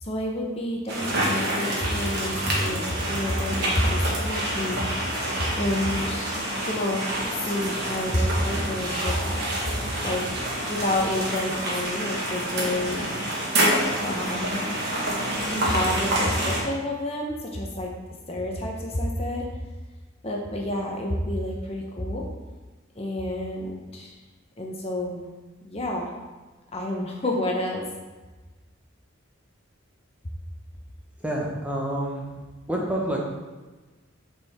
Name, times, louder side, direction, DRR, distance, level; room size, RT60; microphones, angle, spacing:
voice 1, 0.0-5.1 5.5-6.4 6.6-9.5 10.0-13.1 14.0-14.8 15.5-17.9 18.3-19.5 20.2-22.3 23.0-24.1 24.6-25.3 25.6-26.1 26.7-27.9, left 1 dB, 30° left, 0 dB, 0.8 m, -29 dB
sound 1, 0.9-16.6, right 1 dB, 50° right, 1.6 m, -27 dB
voice 2, 31.2-32.3 32.7-33.2, right 1 dB, 5° right, -3 dB, 0.9 m, -28 dB
8.3 x 4.5 x 3.5 m, 1.3 s
head